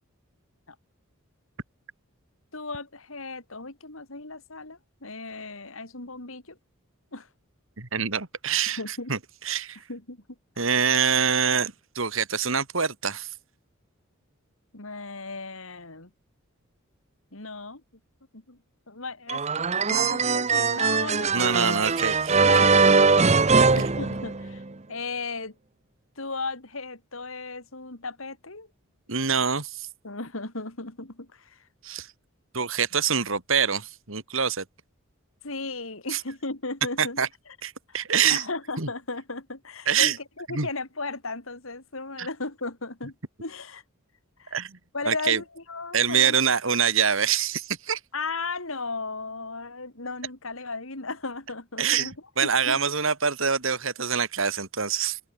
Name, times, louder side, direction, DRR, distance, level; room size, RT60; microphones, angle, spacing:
voice 1, 2.5-6.6 7.1-7.3 8.7-9.1 9.9-10.2 14.7-16.1 17.3-17.8 18.3-18.6 18.9-23.1 23.4-24.6 24.9-25.5 26.2-28.7 30.0-31.6 35.4-37.2 37.9-38.0 38.3-43.2 43.4-43.8 44.4-44.6 44.9-46.4 48.1-52.1 52.4-52.8, left 3 dB, 70° left, 3.5 m, -36 dB
voice 2, 7.8-9.2 9.4-9.8 10.6-13.3 21.3-22.7 23.6-23.7 29.1-29.9 31.8-32.1 32.5-34.6 36.1-36.2 37.0-37.3 37.6-38.5 38.8-38.9 39.9-40.2 40.5-40.7 42.2-42.3 44.5-44.8 45.1-45.4 45.9-48.0 51.8-52.1 52.4-55.2, right 7 dB, 65° right, 2.6 m, -25 dB
sound 1, 19.3-24.7, right 4 dB, 30° right, 0.9 m, -21 dB
open air
head